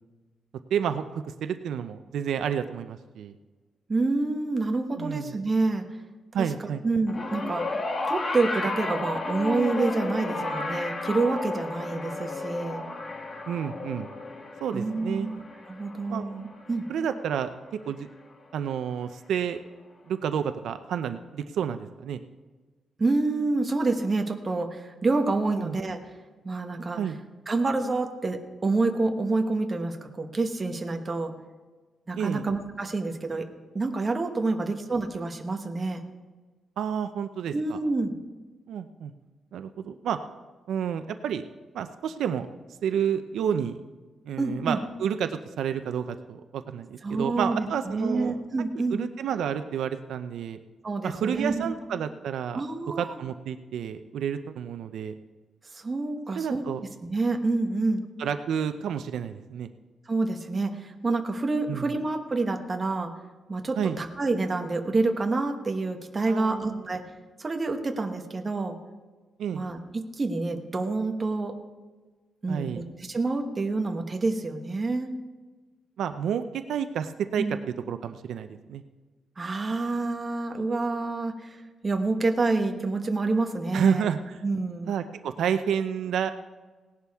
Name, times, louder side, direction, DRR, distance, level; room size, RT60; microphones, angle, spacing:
voice 1, 0.7-3.4 5.0-5.4 6.3-6.8 13.5-14.1 14.6-15.3 16.1-16.3 16.9-17.5 17.9-18.1 18.5-19.6 20.1-22.2 25.5-25.8 27.0-27.2 32.2-32.5 34.5-34.7 36.8-37.8 38.7-39.1 39.5-40.2 40.7-41.4 41.7-42.5 42.8-43.8 44.3-48.4 48.7-50.6 51.0-52.6 52.9-55.1 56.4-56.8 58.2-59.7 61.7-61.9 63.8-64.0 66.3-66.9 69.4-69.7 72.5-72.9 76.0-77.4 77.9-78.8 83.7-84.4 84.9-86.3, right 8 dB, 80° right, 9 dB, 0.6 m, -30 dB
voice 2, 3.9-5.8 6.4-6.5 6.8-7.8 8.1-12.8 14.7-16.9 23.0-26.0 26.4-27.0 27.5-31.3 32.1-33.5 33.7-36.0 37.5-38.1 44.4-44.8 47.0-49.0 50.8-51.7 52.5-53.1 55.7-56.6 57.0-58.0 60.1-63.1 63.5-67.0 67.4-68.8 69.5-71.6 72.4-75.1 77.4-77.5 79.4-84.1 84.4-84.9, right 3 dB, 25° right, 4 dB, 1.1 m, -28 dB
sound 1, 7.1-17.5 18.5-18.6, left 2 dB, 35° left, 1.4 m, -33 dB
18.0 x 11.0 x 3.6 m, 1.3 s
wide cardioid pair, 155°, 0 cm